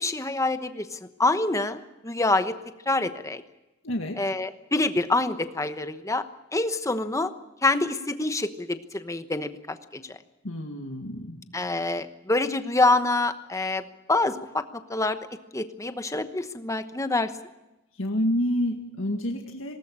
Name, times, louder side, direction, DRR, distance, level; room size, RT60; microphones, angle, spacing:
voice 1, 0.0-2.6 2.9-3.4 4.2-6.2 6.5-7.3 7.6-10.2 11.5-13.8 14.1-15.2 15.5-17.3, left 2 dB, 15° left, 10 dB, 1.0 m, -26 dB
voice 2, 3.8-4.2 10.4-11.4 17.9-19.7, equal, 70° left, 2 dB, 2.0 m, -28 dB
20.0 x 18.5 x 8.8 m, 0.98 s
head